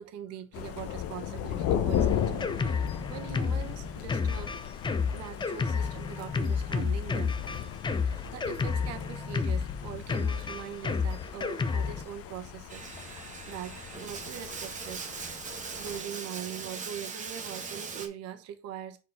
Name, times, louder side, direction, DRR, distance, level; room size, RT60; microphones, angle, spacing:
voice 1, 0.0-4.5 5.1-7.4 8.0-12.9 13.5-15.1 15.8-19.0, right 9 dB, 50° right, 1.1 m, -42 dB
Thunder, 0.5-16.0, left 10 dB, 45° left, 0.8 m, -37 dB
Drum kit, 2.0-12.0, left 5 dB, 15° left, 0.5 m, -31 dB
Bathtub (filling or washing), 12.7-18.1, right 5 dB, 25° right, 1.1 m, -40 dB
4.7 x 4.2 x 5.4 m
supercardioid pair, 110°, 32 cm